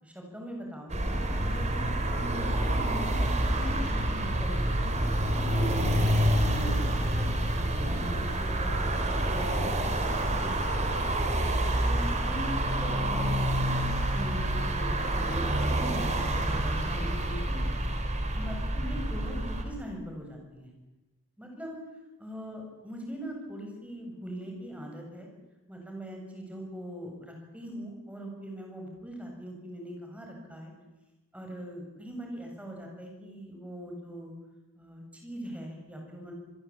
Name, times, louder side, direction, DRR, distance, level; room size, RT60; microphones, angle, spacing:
voice 1, 0.0-11.1 11.4-16.1 16.4-17.8 18.3-20.7 21.4-21.8 22.2-25.3 25.7-30.7 31.3-34.3 34.7-36.3, equal, 5° right, 1 dB, 7.3 m, -41 dB
sound 1, 0.9-19.6, right 1 dB, 30° right, 4.0 m, -28 dB
27.0 x 21.5 x 8.8 m, 1.0 s
head